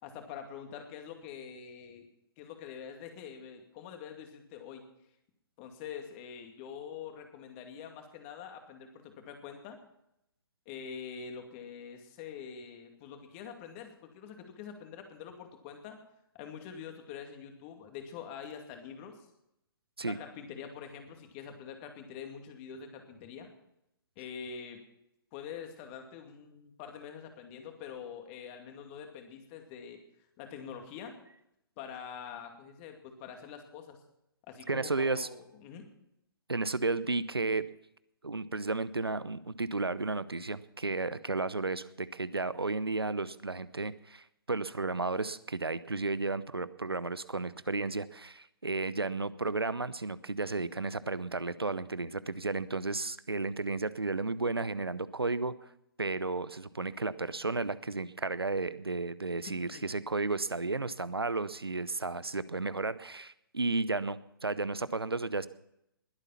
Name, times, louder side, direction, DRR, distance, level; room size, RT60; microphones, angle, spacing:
voice 1, 0.0-2.0 2.4-4.8 5.6-9.8 10.7-16.0 16.3-19.3 20.0-23.5 24.2-24.8 25.3-30.0 30.4-31.1 31.8-34.0 34.5-35.9 59.7-59.9, left 7 dB, 30° left, 5 dB, 2.5 m, -45 dB
voice 2, 34.7-35.3 36.5-37.6 38.2-55.5 56.0-65.5, right 3 dB, 85° right, 17 dB, 0.7 m, -33 dB
21.0 x 8.3 x 5.8 m, 0.81 s
figure-of-eight pair, 130°, 12 cm